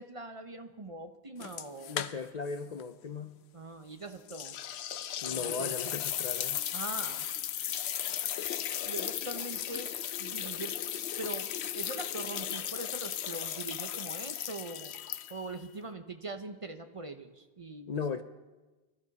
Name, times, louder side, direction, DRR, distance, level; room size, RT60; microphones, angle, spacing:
voice 1, 0.0-2.0 3.5-4.6 5.3-6.0 6.7-7.3 8.9-9.9 10.2-10.7 11.2-14.9 15.3-18.0, right 3 dB, 35° right, 7 dB, 0.8 m, -42 dB
sound 1, 1.4-2.5 2.8-2.9 4.3-15.6, left 10 dB, 85° left, 0.9 m, -36 dB
voice 2, 1.9-3.4 5.2-6.6 17.9-18.2, left 5 dB, 50° left, 9 dB, 0.6 m, -37 dB
23.0 x 13.5 x 4.1 m, 1.2 s
omnidirectional pair, 1.1 m